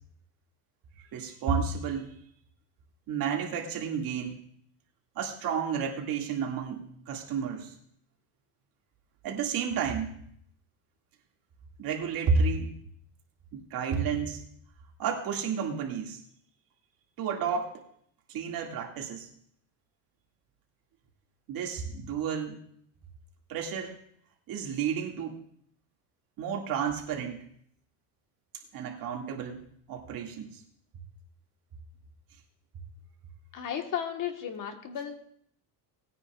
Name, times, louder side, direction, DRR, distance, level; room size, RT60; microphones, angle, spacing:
voice 1, 1.1-2.1 3.1-4.4 5.2-7.7 9.2-10.1 11.8-12.7 13.5-14.4 15.0-16.2 17.2-17.8 18.3-19.3 21.5-22.6 23.5-23.9 24.5-25.4 26.4-27.5 28.7-29.6 29.9-30.6, right 6 dB, 55° right, 0 dB, 2.4 m, -31 dB
voice 2, 33.5-35.1, left 9 dB, 45° left, 5 dB, 1.6 m, -34 dB
19.5 x 9.8 x 2.5 m, 0.66 s
cardioid pair, 135°, 42 cm